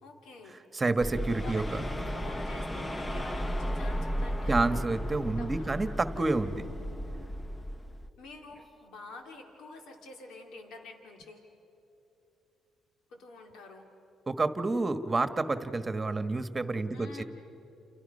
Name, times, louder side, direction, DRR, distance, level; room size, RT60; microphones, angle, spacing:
voice 1, 0.0-0.6 1.4-4.6 5.3-5.7 8.2-11.5 13.1-13.9 16.9-17.2, left 3 dB, 85° left, 3 dB, 2.7 m, -48 dB
voice 2, 0.7-1.9 4.5-6.6 14.3-17.2, right 3 dB, 25° right, 10 dB, 1.4 m, -29 dB
sound 1, 1.0-8.1, equal, 15° left, 1.0 m, -34 dB
29.5 x 29.0 x 5.5 m, 3.0 s
cardioid pair, 90°, 0 cm